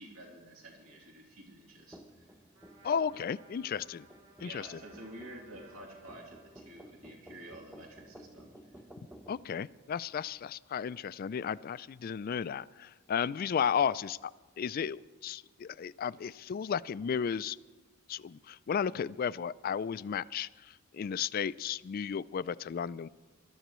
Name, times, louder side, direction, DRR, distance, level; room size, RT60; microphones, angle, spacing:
voice 1, 0.0-2.3 4.4-8.5, right 1 dB, 85° right, -2 dB, 3.1 m, -50 dB
sound 1, 1.9-9.4, right 1 dB, 5° right, 0.8 m, -55 dB
Trumpet, 2.5-7.1, right 3 dB, 60° right, 4.8 m, -60 dB
voice 2, 2.8-4.1 4.4-4.8 9.3-14.3 14.6-17.6 18.1-23.1, left 7 dB, 45° left, 18 dB, 0.3 m, -34 dB
24.0 x 13.0 x 3.1 m, 1.4 s
head